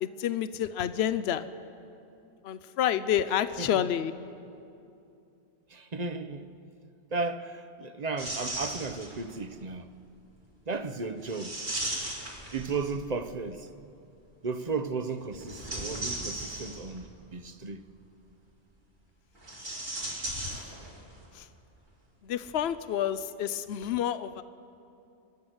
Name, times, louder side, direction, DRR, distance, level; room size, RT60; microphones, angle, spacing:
voice 1, 0.0-1.4 2.4-4.1 20.3-20.4 21.3-21.4 22.2-24.4, left 10 dB, 70° left, 0.9 m, -29 dB
voice 2, 5.7-6.5 7.1-9.9 10.7-11.6 12.5-13.7 14.4-17.8, right 4 dB, 40° right, 0.9 m, -34 dB
sound 1, 8.2-9.3 11.3-13.1 15.3-17.1 19.4-21.1 21.4-21.5 22.4-22.6, right 1 dB, 75° right, 3.6 m, -36 dB
29.5 x 11.5 x 7.9 m
omnidirectional pair, 1.1 m